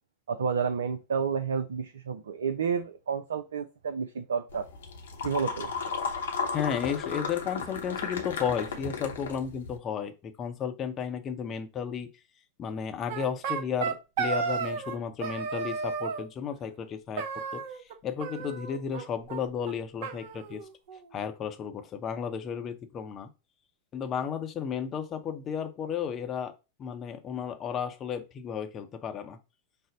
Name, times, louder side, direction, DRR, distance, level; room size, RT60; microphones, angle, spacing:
voice 1, 0.3-4.7 5.2-5.7, right 6 dB, 65° right, 8 dB, 0.4 m, -30 dB
sound 1, 4.5-9.8, left 5 dB, 65° left, 0.8 m, -34 dB
voice 2, 6.5-12.1 12.6-17.6 18.0-20.6 21.1-23.3 23.9-26.5 26.8-29.4, left 7 dB, 30° left, 7 dB, 0.7 m, -33 dB
sound 2, 13.1-15.0 15.2-16.3 17.2-17.9 18.2-19.0 19.3-19.4 19.7-19.8 20.0-21.1, right 5 dB, 50° right, 0.7 m, -33 dB
5.1 x 2.1 x 3.9 m, 0.28 s
figure-of-eight pair, 90°, 0 cm